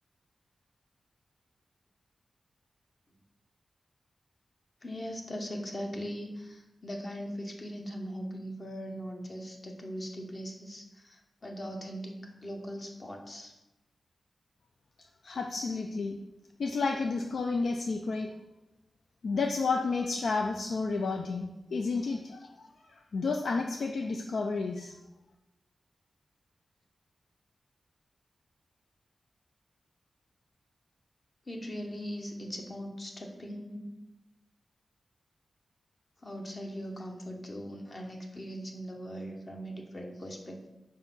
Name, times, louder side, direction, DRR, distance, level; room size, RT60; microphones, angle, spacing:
voice 1, 4.8-13.6 31.5-33.9 36.2-40.7, equal, 30° left, 2 dB, 0.8 m, -40 dB
voice 2, 15.2-16.2 16.6-18.3 19.2-24.9, left 4 dB, 75° left, 3 dB, 0.4 m, -31 dB
5.0 x 3.9 x 5.5 m, 0.98 s
wide cardioid pair, 165°, 0 cm